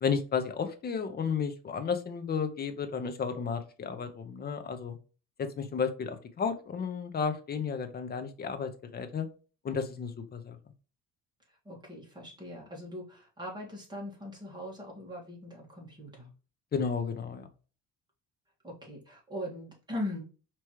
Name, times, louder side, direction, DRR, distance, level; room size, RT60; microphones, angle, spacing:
voice 1, 0.0-5.0 5.4-9.3 9.6-10.6 16.7-17.5, left 6 dB, 30° left, 8 dB, 0.7 m, -33 dB
voice 2, 11.5-16.3 18.6-20.2, left 1 dB, 15° right, -3 dB, 1.9 m, -40 dB
4.8 x 3.0 x 3.0 m, 0.36 s
cardioid pair, 135°, 30 cm